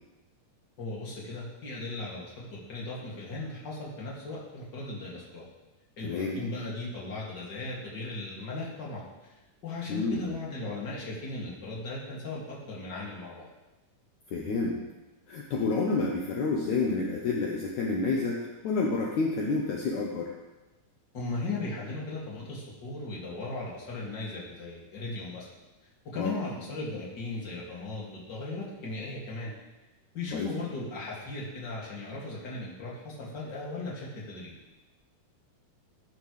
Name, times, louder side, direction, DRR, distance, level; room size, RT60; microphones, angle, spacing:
voice 1, 0.8-5.5 6.0-9.3 9.6-13.5 21.1-25.5 26.0-29.5 30.1-34.5, left 2 dB, 35° left, -5 dB, 2.7 m, -37 dB
voice 2, 6.0-6.4 9.9-10.4 14.3-14.8 15.3-20.3 26.2-26.3 30.3-30.5, left 3 dB, 70° left, -1 dB, 2.2 m, -29 dB
15.0 x 9.2 x 3.3 m, 1.1 s
omnidirectional pair, 3.8 m